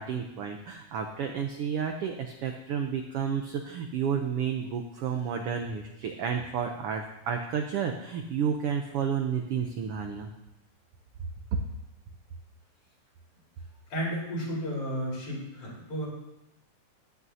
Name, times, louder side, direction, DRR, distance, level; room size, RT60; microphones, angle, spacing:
voice 1, 0.0-10.3 11.5-11.6, right 7 dB, 75° right, 4 dB, 1.4 m, -31 dB
voice 2, 13.9-16.1, equal, 50° left, -5 dB, 5.2 m, -33 dB
15.0 x 11.0 x 2.8 m, 0.91 s
omnidirectional pair, 3.4 m